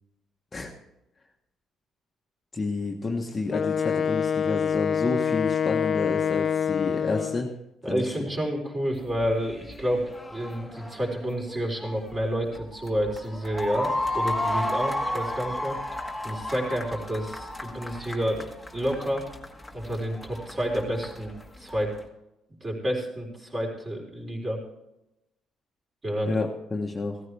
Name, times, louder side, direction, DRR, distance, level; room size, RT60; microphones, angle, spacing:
voice 1, 2.5-7.5 7.9-8.1 26.3-27.2, left 3 dB, 20° left, 0 dB, 1.1 m, -30 dB
Wind instrument woodwind instrument, 3.5-7.5, left 7 dB, 40° left, 0.3 m, -26 dB
voice 2, 7.8-10.0 10.3-15.8 16.2-19.2 19.7-21.9 22.6-24.6 26.0-26.3, equal, 25° right, -1 dB, 4.1 m, -29 dB
sound 1, 8.9-22.0, left 1 dB, ahead, 1.5 m, -34 dB
16.0 x 14.0 x 3.4 m, 0.89 s
cardioid pair, 155°, 0 cm